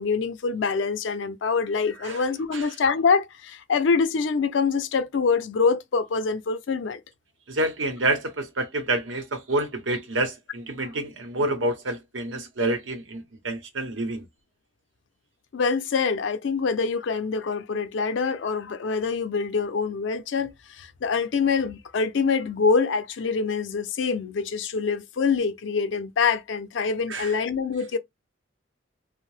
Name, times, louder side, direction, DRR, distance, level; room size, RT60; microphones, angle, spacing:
voice 1, 0.0-7.0 15.5-28.0, left 5 dB, 75° left, 0.4 m, -25 dB
voice 2, 7.5-14.2 27.1-27.3, right 2 dB, 90° right, 0.8 m, -28 dB
2.6 x 2.0 x 3.2 m
head